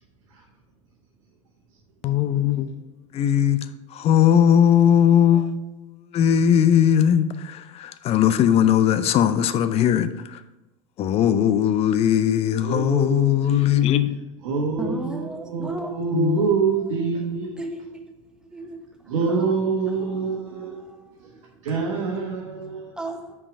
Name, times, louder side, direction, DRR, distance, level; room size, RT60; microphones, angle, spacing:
voice 1, 2.0-2.7 3.1-3.6 4.0-5.5 6.1-7.3 8.0-10.1 11.0-14.1 16.1-16.4, left 9 dB, 40° left, 0.5 m, -18 dB
voice 2, 12.6-13.9 14.4-17.6 19.1-20.8 21.6-22.9, right 4 dB, 70° right, 1.3 m, -26 dB
voice 3, 14.8-16.0 16.4-16.5 17.6-18.1 18.5-18.8 19.3-19.5 19.9-21.0 23.0-23.3, right 1 dB, 5° right, 1.0 m, -35 dB
5.7 x 4.7 x 4.7 m
hypercardioid pair, 90°, 17 cm